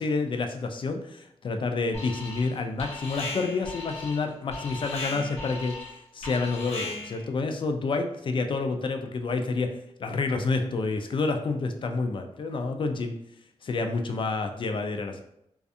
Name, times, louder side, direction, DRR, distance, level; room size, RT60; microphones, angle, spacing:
voice 1, 0.0-9.7 10.0-13.2 13.6-15.2, left 3 dB, 45° left, 5 dB, 0.4 m, -29 dB
Alarm, 1.9-2.5 2.8-7.2, left 2 dB, 65° left, 0.8 m, -37 dB
2.6 x 2.3 x 2.4 m, 0.78 s
cardioid pair, 80°, 11 cm